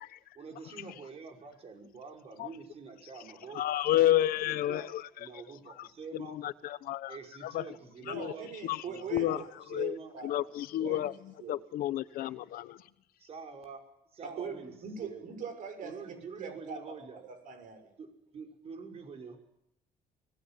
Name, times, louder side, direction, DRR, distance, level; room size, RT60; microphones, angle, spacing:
voice 1, 0.4-4.9 5.2-6.4 7.1-8.5 8.9-10.1 13.2-13.8 14.1-14.7 15.0-15.3 15.8-17.2 18.0-19.4, right 5 dB, 40° right, 5.5 m, -46 dB
voice 2, 3.5-5.0 5.8-5.9 6.1-7.2 7.4-7.6 8.1-8.3 8.6-8.8 9.1-9.4 9.7-9.9 10.2-11.1 11.5-12.8, left 13 dB, 80° left, 1.2 m, -30 dB
voice 3, 8.0-9.4 9.7-10.5 10.8-11.1 11.4-11.6 12.2-12.3 14.2-17.9, right 6 dB, 65° right, 6.9 m, -42 dB
25.5 x 20.0 x 7.5 m
cardioid pair, 140°, 15 cm